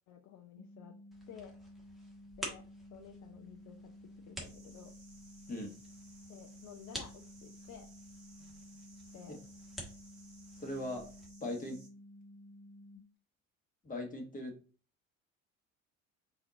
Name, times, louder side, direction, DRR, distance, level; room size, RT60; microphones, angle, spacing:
voice 1, 0.1-0.9 1.3-1.5 2.4-2.6 2.9-4.9 6.3-7.9 9.1-9.4, left 9 dB, 40° left, 4 dB, 0.6 m, -53 dB
sound 1, 0.5-13.0, left 1 dB, 85° left, 0.9 m, -54 dB
sound 2, 1.1-11.3, equal, ahead, 1.4 m, -50 dB
sound 3, 4.4-11.9, right 3 dB, 35° right, 1.8 m, -61 dB
voice 2, 10.5-11.1 11.4-11.8 13.8-14.5, left 1 dB, 20° left, 1 dB, 1.4 m, -39 dB
4.2 x 2.8 x 3.8 m, 0.38 s
figure-of-eight pair, 60°, 41 cm